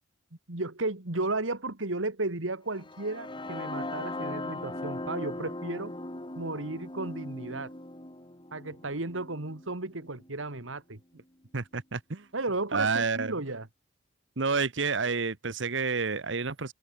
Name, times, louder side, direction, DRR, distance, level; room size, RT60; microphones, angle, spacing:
voice 1, 0.5-5.9 6.4-7.7 8.5-11.0 12.3-13.7, right 2 dB, 90° right, 2.4 m, -34 dB
sound 1, 2.8-10.7, left 2 dB, 25° left, 2.5 m, -39 dB
voice 2, 11.5-12.3 12.7-13.3 14.4-16.7, right 4 dB, 70° right, 1.2 m, -29 dB
head